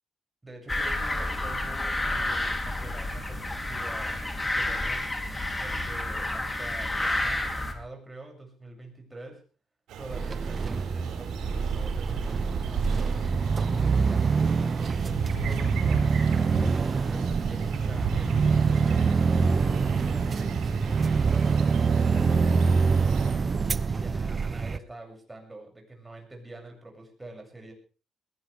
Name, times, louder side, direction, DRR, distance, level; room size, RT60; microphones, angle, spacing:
voice 1, 0.4-5.1 5.6-9.4 10.0-13.2 13.7-19.2 20.0-23.3 23.8-27.7, right 2 dB, 15° right, 2 dB, 7.3 m, -45 dB
sound 1, 0.7-7.7, left 2 dB, 20° left, 3.4 m, -30 dB
sound 2, 9.9-23.3, right 6 dB, 85° right, 5.1 m, -35 dB
sound 3, 10.1-24.8, right 5 dB, 35° right, 0.8 m, -25 dB
21.0 x 17.0 x 3.5 m, 0.37 s
cardioid pair, 90°, 0 cm